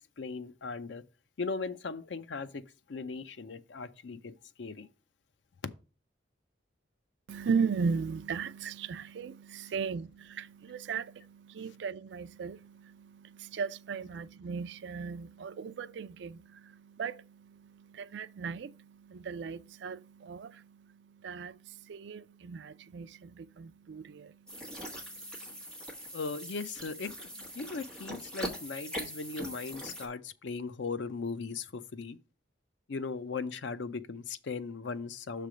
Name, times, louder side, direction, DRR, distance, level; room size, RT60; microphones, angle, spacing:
voice 1, 0.2-1.0 1.4-4.9 26.1-32.2 32.9-35.5, left 4 dB, 80° left, 0.6 m, -38 dB
voice 2, 7.3-25.6, right 5 dB, 70° right, 0.4 m, -37 dB
sound 1, 24.5-30.1, equal, 5° left, 1.5 m, -42 dB
6.6 x 3.4 x 6.1 m
head